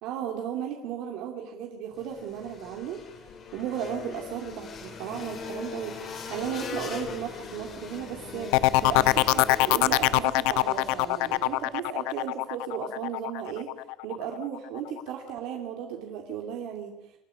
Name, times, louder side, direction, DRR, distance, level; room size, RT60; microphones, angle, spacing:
voice 1, 0.0-3.0 3.5-8.5 8.8-13.7 14.0-17.1, right 9 dB, 60° right, 2 dB, 2.6 m, -35 dB
sound 1, 1.9-11.7, left 5 dB, 30° left, 3.2 m, -40 dB
sound 2, 8.5-14.2 14.5-15.0, left 19 dB, 75° left, 0.8 m, -23 dB
27.0 x 10.5 x 9.8 m, 0.87 s
cardioid pair, 175°, 0 cm